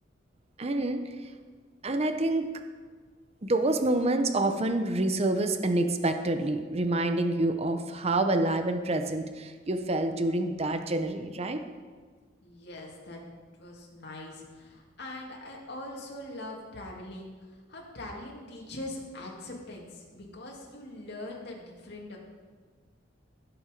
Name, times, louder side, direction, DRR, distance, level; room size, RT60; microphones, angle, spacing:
voice 1, 0.6-1.1 1.8-2.5 3.4-11.6, right 2 dB, 35° right, 7 dB, 0.7 m, -27 dB
voice 2, 12.4-13.2 13.6-22.2, left 1 dB, 60° left, -2 dB, 2.5 m, -42 dB
16.0 x 7.0 x 5.2 m, 1.5 s
head